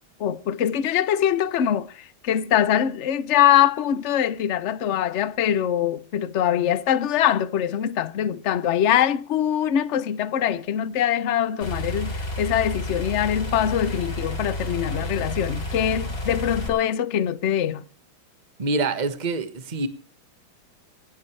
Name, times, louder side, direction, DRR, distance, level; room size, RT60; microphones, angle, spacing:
voice 1, 0.2-17.8, left 10 dB, 60° left, 0.7 m, -23 dB
sound 1, 11.6-16.7, left 1 dB, 45° left, 4.5 m, -30 dB
voice 2, 18.6-19.9, right 3 dB, 25° right, 1.4 m, -25 dB
27.0 x 12.0 x 3.3 m
omnidirectional pair, 2.3 m